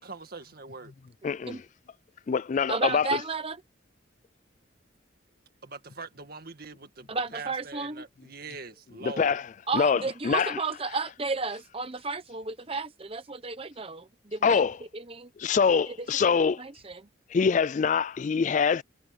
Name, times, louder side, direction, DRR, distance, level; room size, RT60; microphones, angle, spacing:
voice 1, 0.0-0.9 5.6-9.4, right 4 dB, 50° right, 2.0 m, -42 dB
voice 2, 1.2-1.6 2.3-3.2 9.0-9.5 9.7-10.6 14.4-14.8 15.4-16.6 17.3-18.8, left 6 dB, 40° left, 0.3 m, -24 dB
voice 3, 2.7-3.6 7.1-8.0 9.7-14.6 14.9-15.3 15.9-17.0, right 4 dB, 30° right, 1.0 m, -33 dB
head